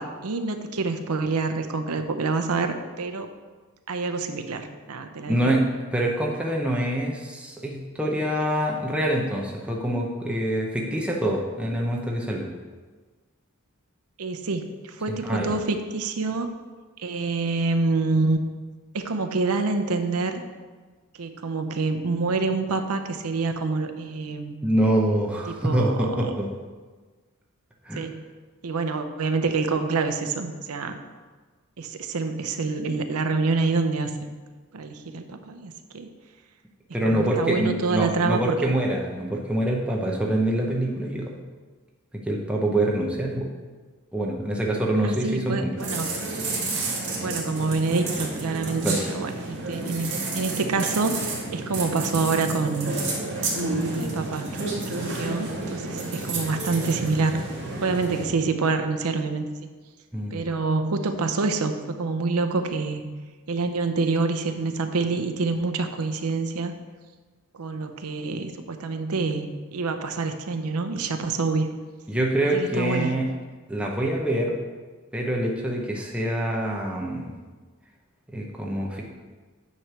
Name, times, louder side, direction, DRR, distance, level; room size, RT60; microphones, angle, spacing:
voice 1, 0.0-3.3 3.9-5.5 14.2-16.5 17.0-18.4 18.9-20.4 21.2-24.6 25.5-26.3 28.0-28.2 28.6-31.0 31.8-34.3 34.7-36.1 37.0-38.7 45.0-46.1 47.2-52.9 53.9-57.4 57.8-59.5 60.3-63.1 63.5-66.7 67.6-71.7 72.4-73.1, right 3 dB, 80° right, 7 dB, 0.6 m, -27 dB
voice 2, 5.3-5.6 5.9-12.5 15.1-15.5 24.6-26.5 27.9-28.1 36.9-41.3 42.3-43.5 44.1-45.7 48.8-49.0 60.1-60.4 72.1-73.3 73.7-74.6 75.1-77.3 78.3-79.0, right 1 dB, 5° right, -2 dB, 0.8 m, -25 dB
sound 1, 45.8-58.3, right 2 dB, 60° right, 2.0 m, -30 dB
9.5 x 3.3 x 6.0 m, 1.4 s
head